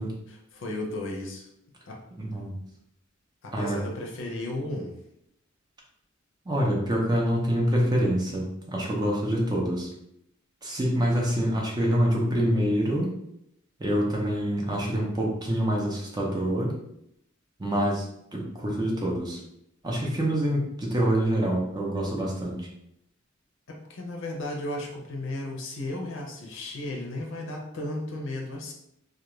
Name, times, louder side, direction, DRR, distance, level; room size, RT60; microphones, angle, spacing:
voice 1, 0.3-1.5 1.9-2.0 3.4-4.9 23.7-28.7, left 1 dB, 65° left, 1 dB, 0.6 m, -34 dB
voice 2, 2.2-2.6 3.5-3.8 6.5-9.9 10.6-13.1 13.8-16.7 17.6-18.0 18.3-19.4 19.8-22.7, equal, 20° right, -2 dB, 0.5 m, -26 dB
2.3 x 2.3 x 3.0 m, 0.77 s
head